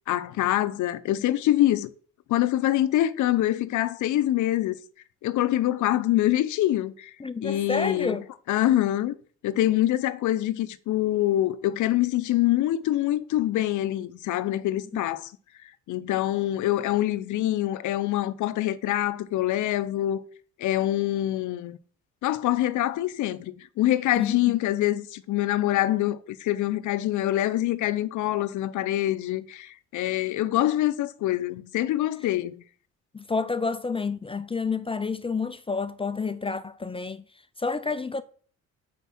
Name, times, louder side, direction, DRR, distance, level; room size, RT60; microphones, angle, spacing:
voice 1, 0.1-1.9 2.3-4.7 5.2-7.1 7.4-8.2 8.5-9.1 9.4-15.3 15.9-20.2 20.6-21.8 22.2-32.6, left 14 dB, 75° left, 0.6 m, -25 dB
voice 2, 7.2-8.2 14.9-15.0 24.2-24.4 33.1-37.2 37.6-38.2, left 4 dB, 20° left, 0.4 m, -29 dB
5.7 x 5.3 x 6.0 m
cardioid pair, 90°, 30 cm